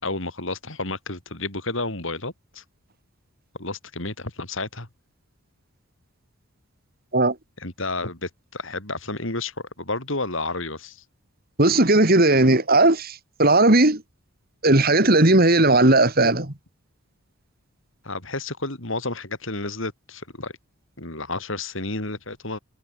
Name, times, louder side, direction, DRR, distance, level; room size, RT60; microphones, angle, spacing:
voice 1, 0.0-2.6 3.6-4.9 7.6-11.0 18.0-20.5 21.0-22.6, left 2 dB, 60° left, 4.5 m, -31 dB
voice 2, 11.6-14.0 14.6-16.5, right 2 dB, 45° right, 2.7 m, -17 dB
head